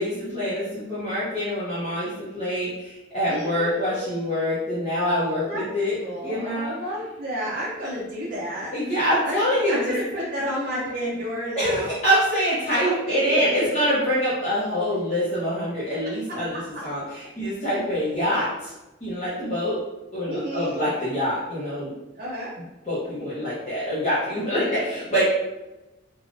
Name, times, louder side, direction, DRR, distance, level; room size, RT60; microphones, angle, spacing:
voice 1, 0.0-6.0 6.2-6.7 8.7-9.9 11.6-18.7 19.0-19.8 20.1-21.9 22.8-25.2, equal, 35° left, -11 dB, 0.8 m, -25 dB
voice 2, 3.3-4.3 5.5-5.6 5.9-9.4 9.7-11.9 12.8-13.8 20.3-20.8 22.2-22.5 24.6-24.8, equal, 45° right, -6 dB, 0.5 m, -31 dB
3.3 x 2.3 x 2.5 m, 1.0 s
head